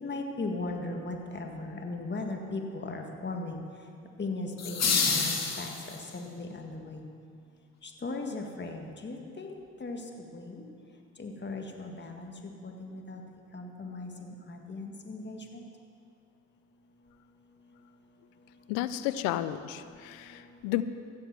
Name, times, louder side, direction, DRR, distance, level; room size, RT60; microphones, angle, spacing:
voice 1, 0.0-3.6 4.2-7.1 7.8-10.6 11.2-13.2 13.5-15.6, left 2 dB, 30° left, 3 dB, 1.9 m, -38 dB
sound 1, 4.6-6.2, left 5 dB, 50° left, 1.9 m, -28 dB
voice 2, 18.7-20.8, left 14 dB, 85° left, 13 dB, 0.6 m, -32 dB
16.0 x 7.2 x 6.2 m, 2.4 s
supercardioid pair, 60°, 34 cm